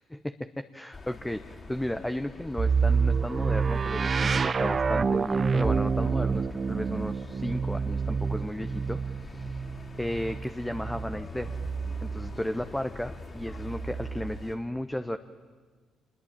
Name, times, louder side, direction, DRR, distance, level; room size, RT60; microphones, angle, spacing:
voice 1, 0.1-9.6 9.9-11.5 12.0-15.2, left 1 dB, 10° left, 9 dB, 1.0 m, -34 dB
sound 1, 0.9-14.6, left 3 dB, 40° left, 5.6 m, -45 dB
sound 2, 2.6-12.4 13.4-14.4, right 5 dB, 40° right, 0.7 m, -28 dB
26.0 x 21.0 x 9.0 m, 1.5 s
hypercardioid pair, 55°, 0 cm